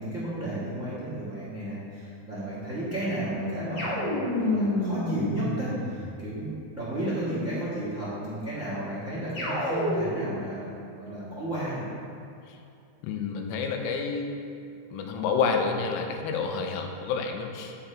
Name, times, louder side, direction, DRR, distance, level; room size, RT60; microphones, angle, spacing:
voice 1, 0.0-11.8, right 1 dB, 65° right, -8 dB, 0.7 m, -33 dB
sound 1, 3.8-6.2 9.3-10.4, left 1 dB, 40° left, 1.6 m, -29 dB
voice 2, 13.0-14.3 14.9-17.8, left 5 dB, 90° left, 3 dB, 2.9 m, -29 dB
8.7 x 7.0 x 4.4 m, 2.6 s
omnidirectional pair, 5.1 m